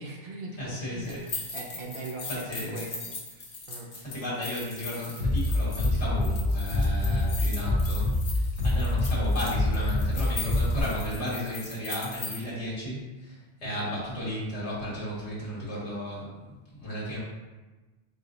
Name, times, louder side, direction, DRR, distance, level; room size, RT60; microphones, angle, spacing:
voice 1, 0.0-3.9 13.6-13.9, right 3 dB, 65° right, 0 dB, 0.7 m, -41 dB
voice 2, 0.6-1.2 2.4-2.8 4.0-17.2, left 1 dB, 75° left, -7 dB, 1.8 m, -34 dB
sound 1, 1.0-12.4, left 3 dB, 50° left, 0.9 m, -39 dB
Bass drum, 5.2-10.8, left 1 dB, 80° right, 1.5 m, -25 dB
5.0 x 2.0 x 3.8 m, 1.2 s
omnidirectional pair, 1.2 m